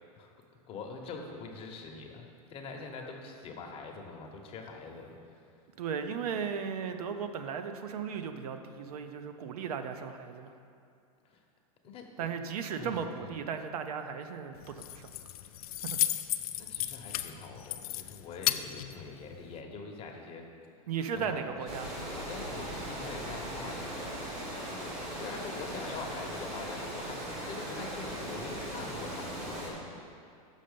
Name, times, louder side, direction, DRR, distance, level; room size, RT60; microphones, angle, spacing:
voice 1, 0.7-5.4 11.3-11.4 11.8-12.3 12.8-13.3 16.6-20.4 21.1-30.1, left 4 dB, 30° left, 2 dB, 0.9 m, -44 dB
voice 2, 5.8-10.5 12.2-15.1 15.8-16.0 20.9-21.9, right 6 dB, 80° right, 8 dB, 0.6 m, -36 dB
Keys jangling, 14.6-19.6, left 13 dB, 75° left, 0.4 m, -35 dB
Water, 21.7-29.7, right 1 dB, 35° right, 1.8 m, -39 dB
6.3 x 5.6 x 5.1 m, 2.4 s
supercardioid pair, 135°, 19 cm